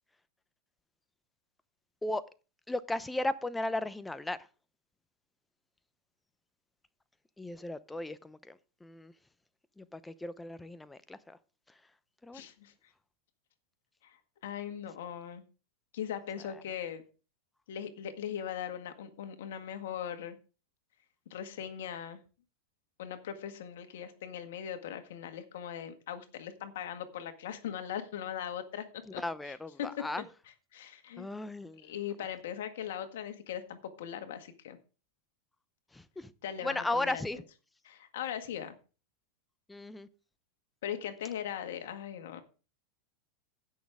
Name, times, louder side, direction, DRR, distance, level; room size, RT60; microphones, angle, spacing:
voice 1, 2.7-4.4 7.4-9.1 9.8-11.4 12.2-12.4 29.1-30.2 31.2-31.9 35.9-36.3 36.6-37.4 39.7-40.1, left 2 dB, 10° left, 0.7 m, -36 dB
voice 2, 12.3-12.7 14.0-15.4 15.9-17.0 17.7-20.4 21.3-22.2 23.0-28.9 29.1-29.9 30.7-31.3 31.8-34.8 36.4-37.2 37.8-38.7 40.8-42.4, left 9 dB, 75° left, 1.7 m, -40 dB
16.0 x 6.3 x 3.6 m
hypercardioid pair, 110°, 0 cm